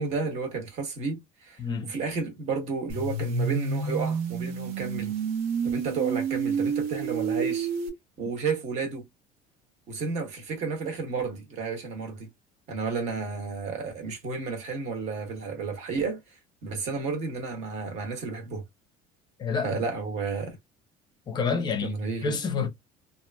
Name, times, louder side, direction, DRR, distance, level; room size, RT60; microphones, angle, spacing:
voice 1, 0.0-5.1 5.7-7.7 8.2-9.0 9.9-12.3 12.7-16.2 16.6-18.6 19.6-20.6 21.8-22.3, right 4 dB, 45° right, 1.1 m, -32 dB
voice 2, 1.6-1.9 19.4-19.8 21.3-21.9 22.2-22.7, left 5 dB, 30° left, 0.6 m, -28 dB
sound 1, 2.9-7.9, right 5 dB, 65° right, 1.0 m, -29 dB
2.9 x 2.5 x 2.2 m
cardioid pair, 155°, 15 cm